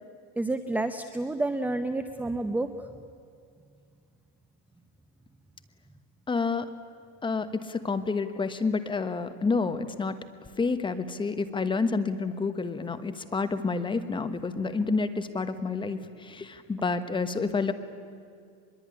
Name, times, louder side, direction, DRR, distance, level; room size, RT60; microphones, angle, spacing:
voice 1, 0.4-2.7, right 2 dB, 5° right, 9 dB, 0.7 m, -29 dB
voice 2, 6.3-6.7 7.2-10.3 10.6-17.7, left 4 dB, 15° left, 10 dB, 1.2 m, -29 dB
23.5 x 22.0 x 9.9 m, 2.3 s
supercardioid pair, 145°, 36 cm